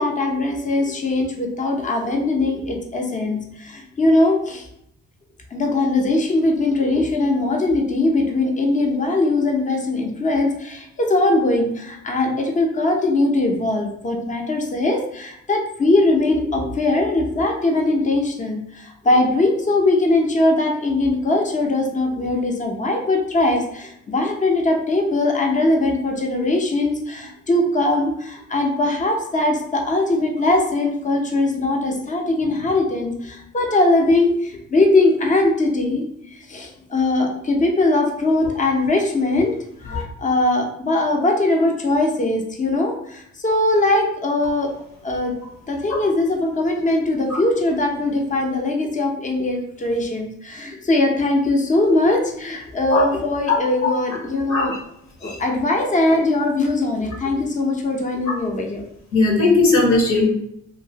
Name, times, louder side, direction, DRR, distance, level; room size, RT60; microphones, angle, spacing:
voice 1, 0.0-4.7 5.5-36.0 36.3-39.5 39.9-44.7 45.0-45.3 45.7-54.8 55.2-58.8, left 2 dB, 25° left, 2 dB, 0.6 m, -20 dB
voice 2, 59.1-60.3, left 3 dB, 70° left, -2 dB, 1.2 m, -18 dB
2.8 x 2.5 x 2.8 m, 0.75 s
cardioid pair, 90°, 30 cm